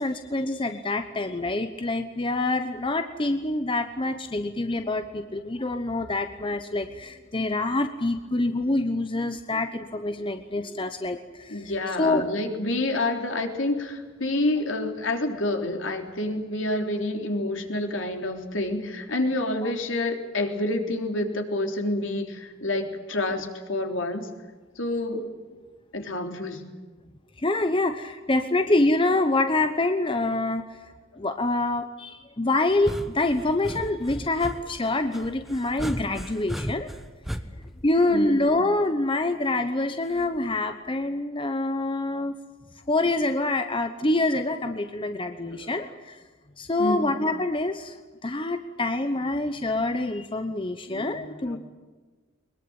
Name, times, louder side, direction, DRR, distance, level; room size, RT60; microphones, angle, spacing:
voice 1, 0.0-11.7 12.0-12.2 19.6-19.7 27.4-30.9 31.2-36.9 37.8-42.4 42.9-46.2 46.6-48.0 48.2-51.6, left 2 dB, 25° left, 8 dB, 1.0 m, -26 dB
voice 2, 11.5-24.3 24.8-25.2 25.9-26.6 38.1-38.4 45.5-45.8 46.8-47.1 50.9-51.6, left 2 dB, 70° left, 4 dB, 3.6 m, -28 dB
sound 1, 32.7-38.8 40.2-40.5, equal, ahead, 1.1 m, -36 dB
22.5 x 22.0 x 8.9 m, 1.4 s
head